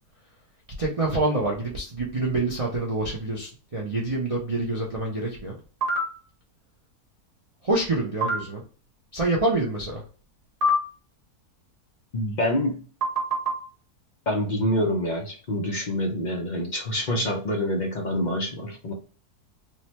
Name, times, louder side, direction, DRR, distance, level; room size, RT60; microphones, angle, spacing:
voice 1, 0.8-5.6 7.6-8.6 9.1-10.0, right 2 dB, 55° right, -3 dB, 0.3 m, -26 dB
sound 1, 5.8-6.0 8.2-8.4 10.6-10.8 13.0-13.5, equal, 40° right, 1.1 m, -23 dB
voice 2, 12.1-12.8 14.3-18.9, left 1 dB, 60° left, 1 dB, 0.4 m, -26 dB
3.6 x 2.2 x 2.9 m, 0.38 s
omnidirectional pair, 1.7 m